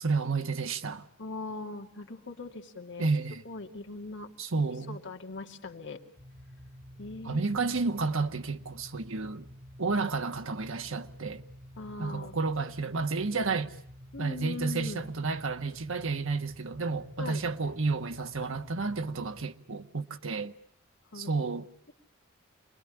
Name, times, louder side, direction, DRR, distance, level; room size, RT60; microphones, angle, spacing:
voice 1, 0.0-1.1 3.0-3.4 4.4-5.0 7.2-9.5 9.8-11.4 12.0-13.7 14.2-20.5 21.1-21.7, right 4 dB, 70° right, 1.4 m, -31 dB
voice 2, 1.2-3.1 3.4-4.3 4.9-6.0 7.0-7.4 11.8-12.4 14.1-15.1 17.2-17.4 21.1-21.3, left 3 dB, 60° left, 2.5 m, -40 dB
sound 1, 6.2-19.5, equal, 45° right, 5.4 m, -50 dB
27.0 x 21.0 x 10.0 m
head